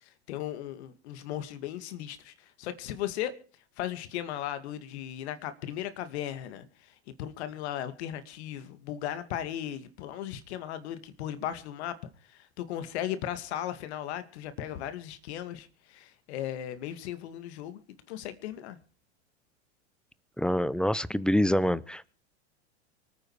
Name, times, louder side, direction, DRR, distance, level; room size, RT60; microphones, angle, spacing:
voice 1, 0.0-3.3 3.8-12.0 12.3-17.8 18.1-18.8, left 11 dB, 70° left, 2.3 m, -37 dB
voice 2, 20.4-22.1, equal, ahead, 0.7 m, -26 dB
24.5 x 9.3 x 4.9 m
hypercardioid pair, 100°, 35 cm